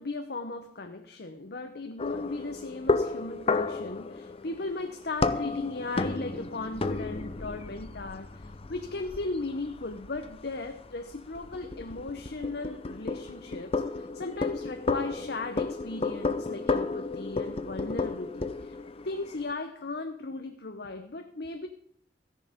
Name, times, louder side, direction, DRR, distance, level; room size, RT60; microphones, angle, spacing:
voice 1, 0.0-18.8 19.0-21.7, left 3 dB, 65° left, 7 dB, 0.9 m, -37 dB
sound 1, 2.0-19.5, left 3 dB, 35° left, 0.6 m, -33 dB
14.0 x 10.5 x 5.1 m, 0.64 s
head